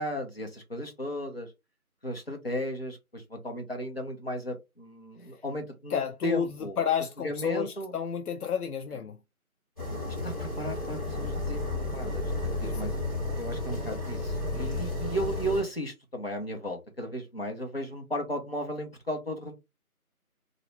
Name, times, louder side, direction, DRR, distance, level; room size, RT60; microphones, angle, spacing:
voice 1, 0.0-1.5 2.0-6.8 7.2-7.9 10.2-13.0 13.3-19.5, equal, 45° left, 0.6 m, -35 dB
voice 2, 5.9-9.2 12.6-12.7 14.5-14.9, left 7 dB, 90° left, 0.5 m, -31 dB
sound 1, 9.8-15.6, left 2 dB, 25° left, 1.3 m, -32 dB
2.5 x 2.0 x 3.0 m
figure-of-eight pair, 175°, 44 cm